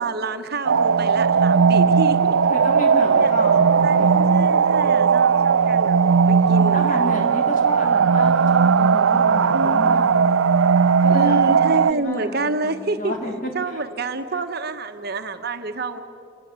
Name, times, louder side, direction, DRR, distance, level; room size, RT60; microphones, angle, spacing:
voice 1, 0.0-2.4 3.2-3.5 3.8-6.0 6.3-7.1 9.5-10.1 11.1-13.1 13.5-16.0, right 2 dB, 55° right, 7 dB, 1.3 m, -28 dB
sound 1, 0.7-11.9, right 6 dB, 90° right, 0.5 m, -17 dB
voice 2, 2.5-4.2 6.5-10.2 11.0-11.6 11.9-13.8, equal, 45° left, 2 dB, 3.9 m, -31 dB
28.0 x 18.5 x 9.0 m, 2.3 s
head